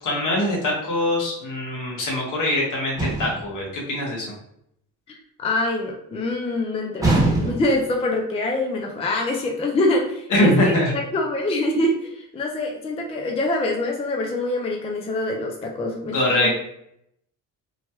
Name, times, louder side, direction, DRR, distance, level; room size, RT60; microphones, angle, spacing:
voice 1, 0.0-4.3 10.3-10.9 16.1-16.5, left 1 dB, 60° left, -2 dB, 1.3 m, -22 dB
sound 1, 3.0-3.5 7.0-7.8, right 2 dB, 10° right, 1.0 m, -22 dB
voice 2, 5.1-16.5, left 2 dB, 15° left, 1 dB, 0.4 m, -25 dB
3.1 x 2.2 x 2.9 m, 0.75 s
cardioid pair, 95°, 35 cm